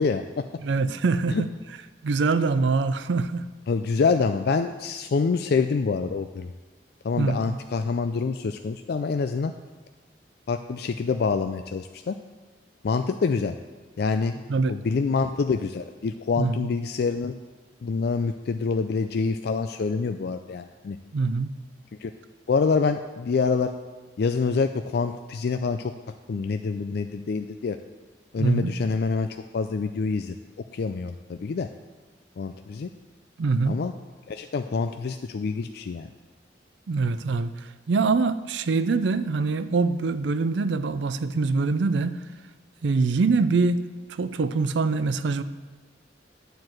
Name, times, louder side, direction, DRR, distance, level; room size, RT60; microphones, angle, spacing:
voice 1, 0.0-0.4 1.3-1.4 3.7-6.5 7.0-9.5 10.5-12.2 12.8-13.5 14.0-14.3 14.7-17.3 17.8-21.0 22.0-22.1 22.5-23.7 24.2-25.9 26.3-27.8 28.3-30.4 30.7-31.7 32.4-32.9 33.7-33.9 34.3-36.1, left 4 dB, 60° left, 8 dB, 0.4 m, -26 dB
voice 2, 0.6-1.5 2.0-3.5 7.2-7.6 14.5-14.7 16.4-16.6 21.1-21.5 28.4-28.7 33.4-33.8 36.9-37.5 37.9-42.2 42.8-43.8 44.2-45.4, right 4 dB, 75° right, 13 dB, 0.5 m, -24 dB
9.5 x 4.6 x 7.7 m, 1.3 s
head